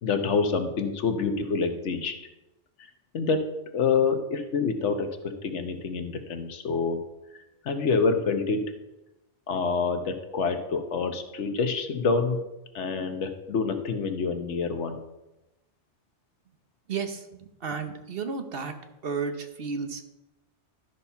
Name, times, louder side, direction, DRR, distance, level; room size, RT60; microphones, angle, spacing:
voice 1, 0.0-2.1 3.1-3.4 3.7-5.1 5.4-7.0 7.6-8.6 9.5-12.4 12.7-15.0, left 4 dB, 85° left, 6 dB, 1.3 m, -27 dB
voice 2, 16.9-18.7 19.0-20.0, right 5 dB, 60° right, 7 dB, 1.0 m, -33 dB
12.5 x 4.3 x 5.7 m, 0.95 s
omnidirectional pair, 1.2 m